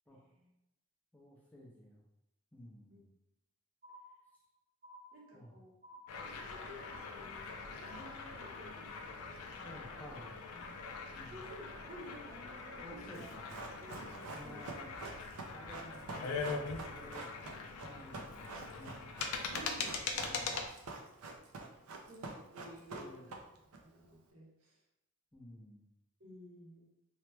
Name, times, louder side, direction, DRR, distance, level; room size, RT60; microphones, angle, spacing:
voice 1, 0.1-0.5 2.9-3.0 5.1-5.7 6.2-10.0 11.3-13.5 13.8-14.0 14.3-14.6 19.5-20.1 22.0-23.4 23.8-24.8 26.2-26.9, equal, 70° right, -2 dB, 0.8 m, -54 dB
voice 2, 1.1-2.0 2.5-3.1 5.3-5.6 9.6-10.7 11.1-11.4 12.8-13.4 14.1-14.9 15.5-17.5 17.8-19.2 20.0-20.7 22.6-23.3 25.3-25.8, equal, 5° left, -3 dB, 0.5 m, -53 dB
sound 1, 3.8-4.5 4.8-5.5 5.8-6.5 6.8-7.5 7.8-8.5, equal, 40° right, 0.7 m, -55 dB
sound 2, 6.1-20.7, left 4 dB, 90° left, 0.4 m, -43 dB
Run, 13.1-23.8 24.0-24.1, right 3 dB, 85° right, 0.4 m, -47 dB
2.9 x 2.1 x 3.2 m, 0.87 s
head